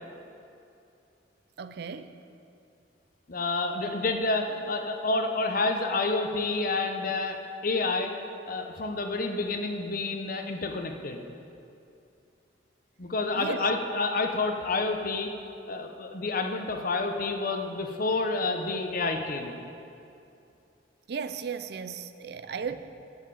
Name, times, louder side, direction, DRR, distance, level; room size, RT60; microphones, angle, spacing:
voice 1, 1.6-2.1 13.3-13.6 21.1-22.7, right 6 dB, 60° right, 11 dB, 0.5 m, -35 dB
voice 2, 3.3-8.1 8.5-11.2 13.0-15.3 15.7-19.6, left 3 dB, 50° left, 5 dB, 0.9 m, -29 dB
9.9 x 7.3 x 7.1 m, 2.6 s
head